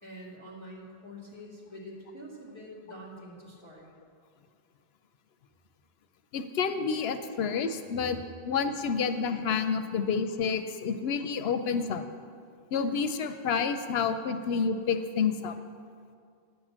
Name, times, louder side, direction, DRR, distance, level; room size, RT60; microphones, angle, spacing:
voice 1, 0.0-3.9 8.3-8.4 9.9-10.0 10.8-10.9, equal, 25° right, -5 dB, 2.1 m, -46 dB
voice 2, 6.3-8.2 8.5-12.0 12.7-15.5, left 6 dB, 80° left, 9 dB, 0.8 m, -29 dB
9.4 x 6.5 x 7.3 m, 2.3 s
omnidirectional pair, 1.0 m